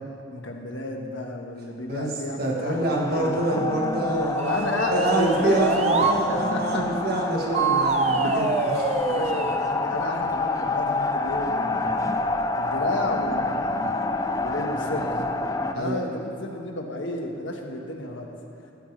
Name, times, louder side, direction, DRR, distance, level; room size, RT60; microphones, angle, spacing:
voice 1, 0.3-3.4 4.5-6.9 8.2-8.4 9.0-12.3 12.5-14.0 14.4-15.1 15.7-18.3, left 1 dB, 80° left, 2 dB, 1.4 m, -32 dB
voice 2, 2.4-8.5 8.8-9.0 14.9-15.2 15.7-16.0, right 1 dB, 55° right, -2 dB, 1.7 m, -26 dB
sound 1, 2.7-15.7, left 2 dB, 20° left, 0.4 m, -28 dB
sound 2, 4.4-6.2 7.5-9.6, right 4 dB, 35° right, 0.6 m, -25 dB
17.0 x 12.0 x 3.4 m, 2.7 s
head